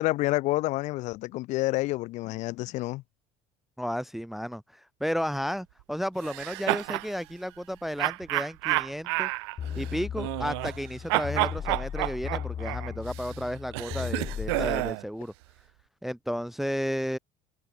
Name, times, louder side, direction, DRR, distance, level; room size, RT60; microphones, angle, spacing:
voice 1, 0.0-3.0, left 19 dB, 65° left, 1.5 m, -28 dB
voice 2, 3.8-9.3 9.8-15.3 16.0-17.2, equal, ahead, 0.6 m, -33 dB
sound 1, 6.2-7.1 8.0-10.8 11.1-15.0, right 26 dB, 85° right, 1.0 m, -30 dB
sound 2, 9.6-14.9, left 8 dB, 35° left, 1.0 m, -36 dB
supercardioid pair, 95°, 13 cm